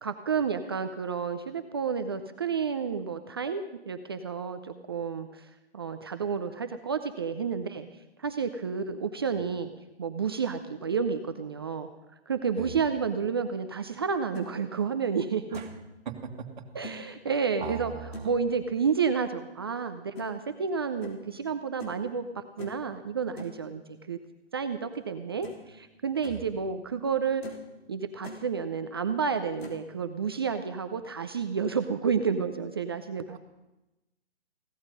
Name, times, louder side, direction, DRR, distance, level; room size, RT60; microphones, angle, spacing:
voice 1, 0.0-5.5 5.7-7.9 8.2-9.7 10.0-11.9 12.3-15.6 16.7-17.9 18.2-24.2 24.5-27.4 27.9-33.4, right 6 dB, 25° right, 8 dB, 0.5 m, -30 dB
sound 1, 14.1-14.5 15.0-15.1 15.5-15.8 16.8-17.0 18.1-18.4 20.1-20.3 21.0-21.2 21.8-22.0 22.6-22.8 23.4-23.6 24.9-25.0 25.4-25.7 26.0-26.4 26.9-27.0 27.4-27.7 28.0-28.4 29.6-29.8, equal, 70° left, 3.5 m, -43 dB
voice 2, 16.1-16.6 17.6-18.3 26.3-26.5, right 7 dB, 45° right, 3 dB, 2.0 m, -39 dB
16.5 x 12.5 x 5.3 m, 1.0 s
hypercardioid pair, 150°, 32 cm